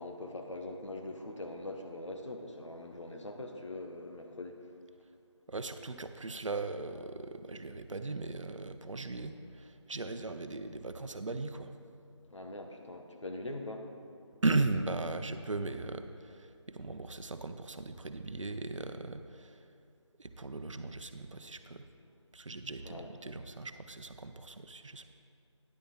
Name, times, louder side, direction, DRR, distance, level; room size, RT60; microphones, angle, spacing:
voice 1, 0.0-4.6 12.3-13.9 20.8-20.9 22.8-23.1, left 2 dB, 75° left, 3 dB, 1.2 m, -42 dB
voice 2, 5.5-11.7 14.4-19.6 20.2-21.8 22.3-25.0, right 3 dB, 85° right, 9 dB, 0.7 m, -37 dB
10.0 x 8.0 x 4.2 m, 2.5 s
figure-of-eight pair, 165°, 16 cm